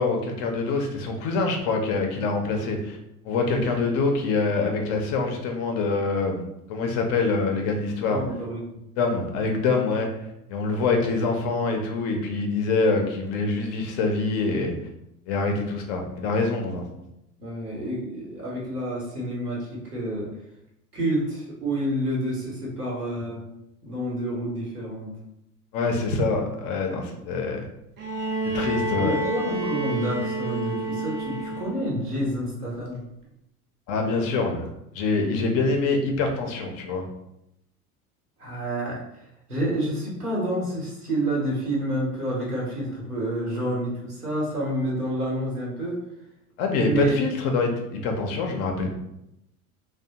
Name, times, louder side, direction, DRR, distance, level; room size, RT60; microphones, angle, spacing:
voice 1, 0.0-3.0 3.2-6.4 6.7-8.2 9.0-10.1 10.5-14.7 15.3-16.8 25.7-27.6 28.4-29.2 33.9-34.7 34.9-37.0 46.6-48.9, left 3 dB, 35° left, 3 dB, 0.4 m, -25 dB
voice 2, 8.1-8.6 17.4-20.3 20.9-23.4 23.8-25.2 28.9-33.0 38.4-39.0 39.5-46.0 46.8-47.2, right 1 dB, 90° right, -4 dB, 0.9 m, -28 dB
Bowed string instrument, 28.0-32.0 33.2-33.3, right 2 dB, 25° right, 0.5 m, -29 dB
2.6 x 2.0 x 2.7 m, 0.83 s
figure-of-eight pair, 75°, 45 cm